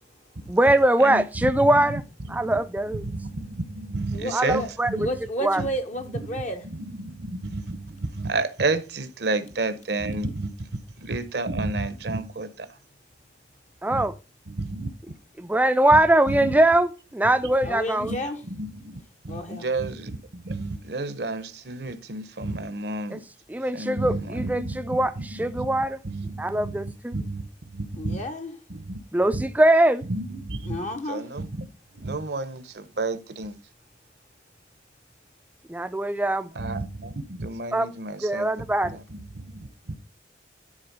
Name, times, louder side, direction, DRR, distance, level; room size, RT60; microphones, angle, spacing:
voice 1, 0.5-2.0 2.3-3.1 4.3-5.1 5.4-5.6 13.8-14.1 15.4-18.1 23.1-23.2 23.5-26.0 26.4-27.2 29.1-30.0 35.7-36.5 37.7-37.9 38.2-39.0, right 1 dB, 10° right, 0.4 m, -22 dB
voice 2, 1.0-2.0 2.3-2.6 2.9-5.1 5.6-5.7 6.3-10.5 11.0-12.7 13.9-14.0 14.5-14.9 15.9-16.0 16.3-16.5 18.0-18.2 18.4-19.0 19.2-23.2 23.7-28.2 28.7-29.0 29.3-29.4 30.1-31.5 31.9-33.5 36.5-39.9, right 2 dB, 60° right, 0.8 m, -31 dB
voice 3, 4.1-4.7 5.0-6.6 17.6-18.4 19.3-19.7 28.0-28.5 30.6-31.3, equal, 40° left, 0.9 m, -31 dB
9.9 x 4.1 x 5.3 m
head